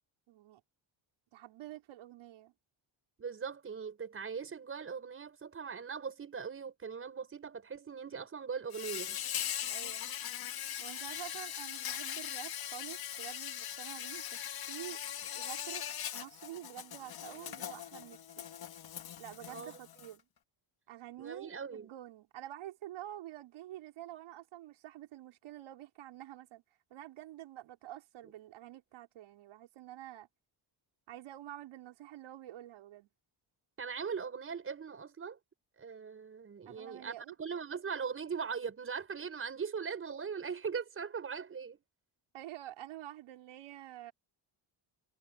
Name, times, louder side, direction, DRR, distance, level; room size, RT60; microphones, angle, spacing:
voice 1, 0.3-0.6 1.3-2.5 9.7-10.1 10.8-15.0 15.3-15.8 16.1-18.5 19.2-20.2 20.9-26.6 26.9-30.3 31.1-33.1 36.7-37.4 42.3-44.1, right 13 dB, 80° right, 5.7 m, -48 dB
voice 2, 3.2-9.2 19.5-19.9 21.2-21.9 33.8-35.4 35.8-41.8, right 6 dB, 25° right, 5.8 m, -40 dB
Insect, 8.7-20.1, left 10 dB, 50° left, 2.2 m, -40 dB
cardioid pair, 170°, 47 cm